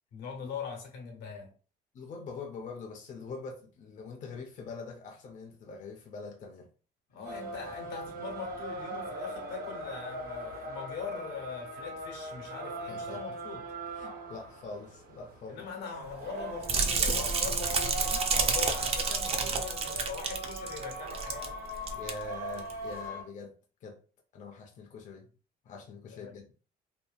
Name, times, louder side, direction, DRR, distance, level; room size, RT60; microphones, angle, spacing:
voice 1, 0.1-1.5 7.1-13.6 15.5-21.5 26.1-26.3, left 6 dB, 85° left, 0.9 m, -42 dB
voice 2, 1.9-6.7 12.9-13.2 13.9-15.7 21.9-23.5 23.8-24.0 24.3-25.3 25.6-26.5, left 4 dB, 45° left, 0.5 m, -43 dB
sound 1, 7.2-23.2, right 1 dB, 60° right, 0.8 m, -40 dB
sound 2, 16.6-21.5 21.7-22.1 22.6-22.7, right 4 dB, 35° right, 0.5 m, -29 dB
2.7 x 2.2 x 2.4 m
cardioid pair, 110°, 17 cm